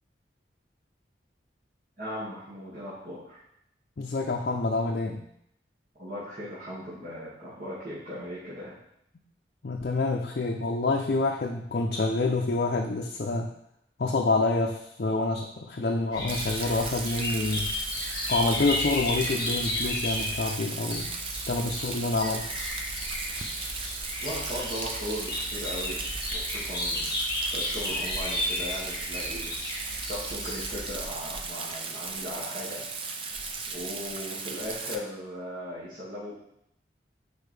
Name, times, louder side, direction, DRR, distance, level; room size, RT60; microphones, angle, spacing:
voice 1, 2.0-3.4 5.9-8.8 24.2-26.1 26.3-27.2 27.5-29.5 30.0-32.8 33.7-36.3, equal, 50° right, -10 dB, 1.9 m, -38 dB
voice 2, 4.0-5.2 9.6-13.5 14.0-17.7 18.3-21.1 21.5-22.5, left 3 dB, 55° left, 1 dB, 0.5 m, -27 dB
sound 1, 16.1-20.5 20.9-30.9, left 1 dB, 20° left, 1.2 m, -33 dB
Rain, 16.3-35.0, right 4 dB, 30° right, 0.5 m, -36 dB
6.6 x 4.5 x 3.3 m, 0.73 s
head